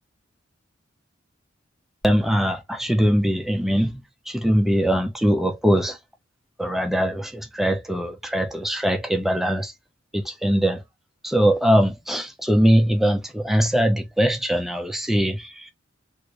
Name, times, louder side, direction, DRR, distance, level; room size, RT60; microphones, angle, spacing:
voice 1, 2.0-4.0 4.3-6.0 6.6-9.7 10.1-10.8 11.2-15.7, equal, ahead, 0.5 m, -21 dB
3.3 x 2.6 x 3.0 m
head